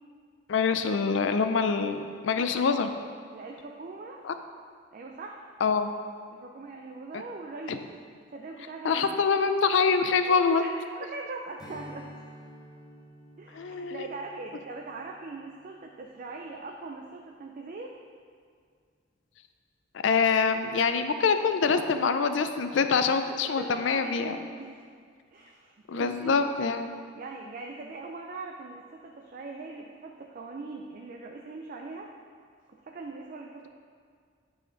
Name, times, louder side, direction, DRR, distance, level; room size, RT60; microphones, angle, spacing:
voice 1, 0.5-2.9 4.2-4.3 5.6-5.9 7.1-7.2 7.7-7.8 8.8-10.6 13.5-14.1 20.0-24.4 25.9-26.9, left 5 dB, 70° left, 8 dB, 0.4 m, -25 dB
voice 2, 3.3-4.2 4.9-5.4 6.3-7.9 8.3-9.5 10.2-12.1 13.4-17.9 23.6-24.8 25.3-26.8 27.1-32.1 32.8-33.7, right 3 dB, 45° right, 1 dB, 0.4 m, -41 dB
Strum, 11.6-16.4, equal, 20° left, 0.9 m, -51 dB
8.9 x 4.2 x 3.9 m, 2.1 s
head